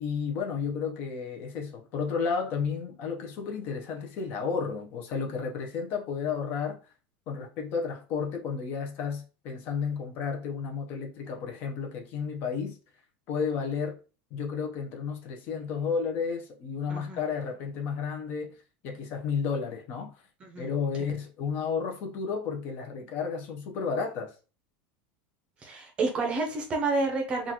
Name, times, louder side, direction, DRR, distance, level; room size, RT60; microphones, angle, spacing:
voice 1, 0.0-6.8 7.3-12.8 13.3-14.0 14.3-18.6 18.8-20.1 20.6-24.3, left 5 dB, 40° left, 0.7 m, -32 dB
voice 2, 16.9-17.2 20.4-20.7 25.6-27.5, right 3 dB, 20° right, 0.6 m, -29 dB
3.8 x 2.4 x 2.9 m
supercardioid pair, 165°, 5 cm